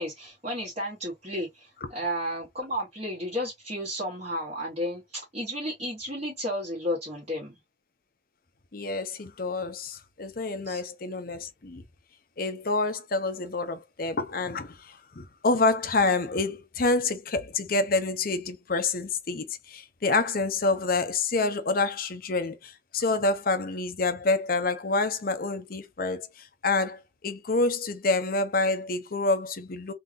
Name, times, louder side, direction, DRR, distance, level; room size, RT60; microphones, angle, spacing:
voice 1, 0.0-7.5 10.6-10.8, equal, 35° right, 1.6 m, -33 dB
voice 2, 8.7-11.8 12.4-29.9, left 3 dB, 55° left, 0.7 m, -27 dB
3.8 x 2.9 x 2.6 m
head